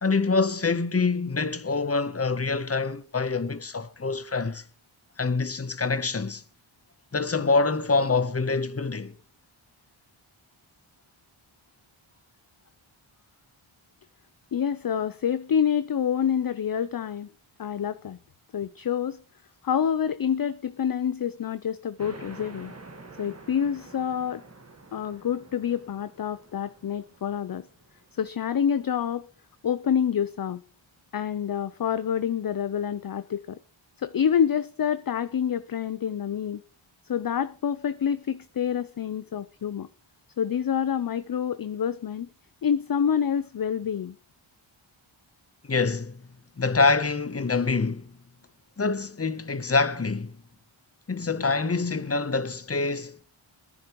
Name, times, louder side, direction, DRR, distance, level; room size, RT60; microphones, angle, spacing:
voice 1, 0.0-4.6 5.2-6.4 7.1-9.1 45.7-46.2 46.6-48.1 48.8-50.4 51.1-53.2, left 4 dB, 30° left, 0.9 m, -25 dB
voice 2, 14.5-17.3 17.6-18.2 18.5-19.2 19.6-22.7 23.2-24.4 24.9-27.7 28.1-29.3 29.6-30.6 31.1-33.6 34.0-36.6 37.1-39.9 40.4-42.3 42.6-44.2, left 8 dB, 45° left, 0.5 m, -27 dB
sound 1, 22.0-29.1, right 3 dB, 30° right, 1.6 m, -48 dB
21.5 x 10.5 x 3.0 m
wide cardioid pair, 70°, 50 cm